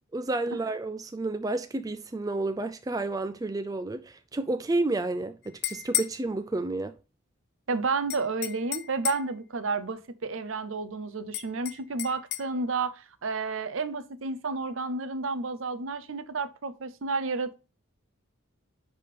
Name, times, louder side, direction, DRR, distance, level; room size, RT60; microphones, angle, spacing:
voice 1, 0.1-6.9, right 2 dB, 15° right, 0.3 m, -30 dB
sound 1, 5.4-6.2 8.1-9.3 11.3-12.5, left 13 dB, 50° left, 0.6 m, -33 dB
voice 2, 7.7-17.5, right 4 dB, 70° right, 0.7 m, -31 dB
10.5 x 3.7 x 4.2 m
head